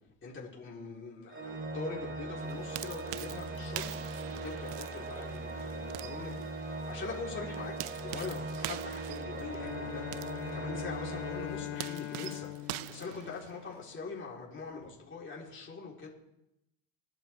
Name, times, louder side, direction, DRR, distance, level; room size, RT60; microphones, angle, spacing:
voice 1, 0.2-7.8 8.0-16.1, left 4 dB, 25° left, -4 dB, 3.8 m, -43 dB
Organ, 1.3-12.2, right 2 dB, 25° right, 2.7 m, -40 dB
sound 1, 2.4-13.9, right 17 dB, 70° right, 0.7 m, -45 dB
Bowed string instrument, 9.3-14.0, left 16 dB, 70° left, 1.8 m, -42 dB
25.0 x 9.4 x 3.4 m, 0.88 s
supercardioid pair, 105°, 43 cm